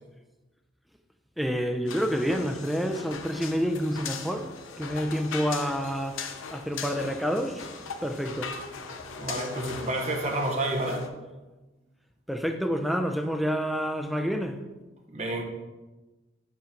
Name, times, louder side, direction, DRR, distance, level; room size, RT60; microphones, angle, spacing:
voice 1, 1.4-4.5 4.8-6.2 6.5-7.6 8.0-8.5 12.3-14.6, equal, ahead, 0.4 m, -28 dB
sound 1, 1.9-11.1, left 5 dB, 85° left, 0.7 m, -39 dB
voice 2, 9.2-11.1 15.1-15.4, right 1 dB, 35° right, 0.9 m, -29 dB
5.8 x 3.7 x 5.8 m
head